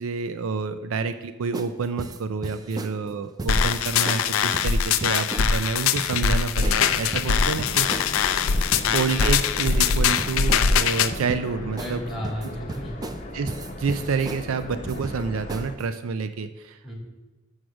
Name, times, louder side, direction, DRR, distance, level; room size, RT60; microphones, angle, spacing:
voice 1, 0.0-7.9 8.9-12.0 13.3-13.5 13.8-16.9, right 5 dB, 80° right, 11 dB, 0.4 m, -28 dB
sound 1, 1.5-1.7 2.0-3.0 3.4-3.7 4.1-4.2 4.5-5.5 6.0-6.3 6.6-6.8 7.1-8.1 8.5-8.9 9.2-9.4 9.7-10.7 11.1-11.5 11.8-12.0 12.2-13.2 13.5-14.4 14.9-15.2 15.5-15.8, right 2 dB, 20° right, 0.4 m, -35 dB
sound 2, 3.5-11.1, left 6 dB, 80° left, 0.4 m, -22 dB
sound 3, 6.5-15.7, left 1 dB, 40° left, 0.9 m, -37 dB
voice 2, 11.8-13.2 16.8-16.9, equal, ahead, -4 dB, 2.4 m, -35 dB
6.4 x 6.3 x 5.9 m, 1.1 s
head